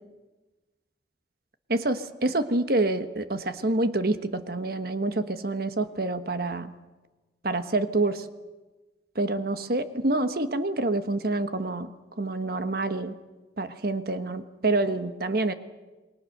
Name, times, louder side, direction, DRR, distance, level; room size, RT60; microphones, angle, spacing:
voice 1, 1.7-6.7 7.4-8.3 9.1-11.9 12.2-13.1 13.6-15.5, right 2 dB, 55° right, 10 dB, 1.3 m, -27 dB
28.5 x 21.5 x 6.7 m, 1.2 s
head